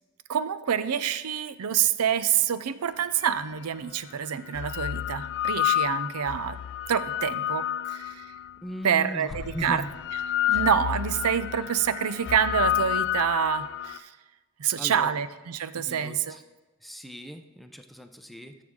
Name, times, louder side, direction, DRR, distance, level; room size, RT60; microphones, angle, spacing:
voice 1, 0.3-6.6 6.9-8.3 8.8-9.8 10.5-14.1 14.6-16.4, right 8 dB, 85° right, 14 dB, 0.5 m, -27 dB
sound 1, 3.2-3.3 4.3-8.5 9.3-14.0, left 12 dB, 55° left, 0.4 m, -29 dB
voice 2, 8.6-9.9 11.6-11.7 14.8-15.1 15.8-16.4 16.8-18.6, equal, ahead, 7 dB, 0.6 m, -38 dB
13.0 x 7.5 x 3.7 m, 1.2 s
head